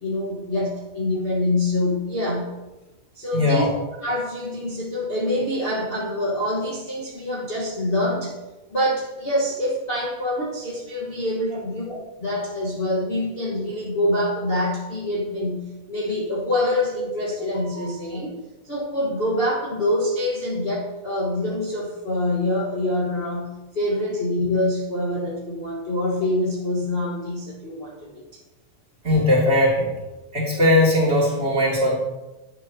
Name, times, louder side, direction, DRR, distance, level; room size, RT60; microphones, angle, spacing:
voice 1, 0.0-2.5 3.1-3.7 4.0-8.4 8.7-18.3 18.6-28.2, left 1 dB, 40° left, -5 dB, 0.8 m, -25 dB
voice 2, 3.3-3.7 29.0-29.9 30.3-31.9, left 1 dB, 20° right, -4 dB, 2.5 m, -19 dB
11.0 x 9.6 x 2.8 m, 1.1 s
omnidirectional pair, 3.3 m